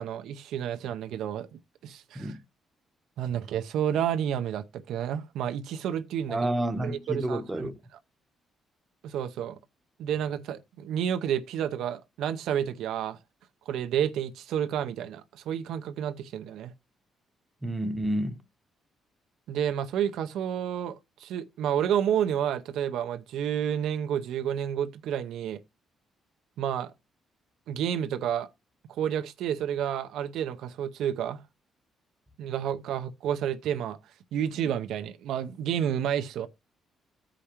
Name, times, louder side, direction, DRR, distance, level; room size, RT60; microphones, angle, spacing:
voice 1, 0.0-2.3 3.2-6.4 6.8-7.7 9.0-9.6 10.0-13.2 13.7-16.7 19.5-25.6 26.6-26.9 27.7-28.5 28.9-31.4 32.4-34.0 34.3-36.5, right 9 dB, 85° right, 0.6 m, -30 dB
voice 2, 6.3-7.7 17.6-18.4, right 1 dB, 15° right, 0.9 m, -29 dB
15.0 x 5.0 x 2.9 m
cardioid pair, 90°, 0 cm